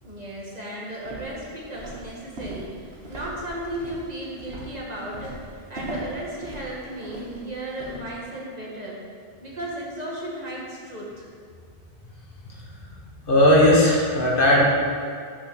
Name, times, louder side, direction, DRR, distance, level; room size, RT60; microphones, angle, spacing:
voice 1, 0.0-9.0 9.4-11.3, right 1 dB, 40° right, -4 dB, 1.5 m, -35 dB
Walk footsteps, 1.0-8.0, right 1 dB, 75° right, 1.7 m, -39 dB
voice 2, 13.3-14.6, left 1 dB, 60° left, -4 dB, 1.6 m, -17 dB
6.5 x 5.5 x 6.1 m, 2.2 s
omnidirectional pair, 1.1 m